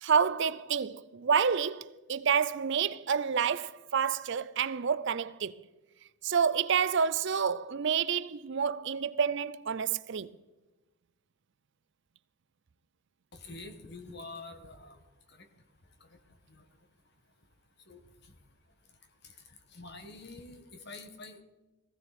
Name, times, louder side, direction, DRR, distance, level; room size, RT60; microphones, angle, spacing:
voice 1, 0.0-5.5 6.2-10.3, right 6 dB, 55° right, 0.5 m, -29 dB
voice 2, 13.3-15.0 15.4-15.5 16.5-16.6 17.9-18.0 19.7-21.4, left 3 dB, 50° left, 1.6 m, -46 dB
19.0 x 15.5 x 4.3 m
head